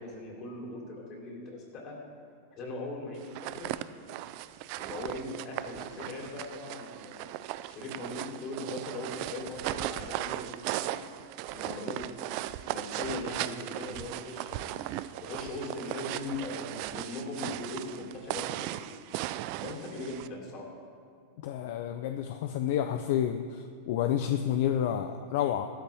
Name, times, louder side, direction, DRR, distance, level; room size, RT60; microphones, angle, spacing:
voice 1, 0.0-2.0 2.5-3.8 4.8-7.3 7.7-11.0 11.5-12.1 12.7-18.8 19.6-20.7, left 2 dB, 40° left, -1 dB, 3.2 m, -40 dB
sound 1, 3.2-20.3, right 15 dB, 50° right, 0.4 m, -37 dB
voice 2, 21.4-25.7, left 10 dB, 60° left, 7 dB, 0.6 m, -29 dB
15.0 x 12.5 x 3.5 m, 2.3 s
supercardioid pair, 140°, 0 cm